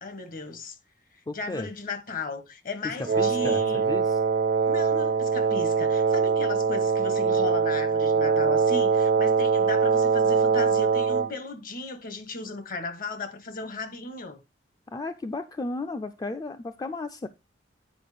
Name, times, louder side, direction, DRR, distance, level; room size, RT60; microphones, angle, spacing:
voice 1, 0.0-0.8 1.3-3.8 4.7-14.4, left 3 dB, 50° left, 1.3 m, -35 dB
voice 2, 1.3-1.7 2.8-4.2 14.9-17.3, left 2 dB, 20° left, 0.4 m, -34 dB
Wind instrument woodwind instrument, 3.0-11.4, right 5 dB, 50° right, 0.4 m, -23 dB
9.1 x 4.7 x 5.0 m
head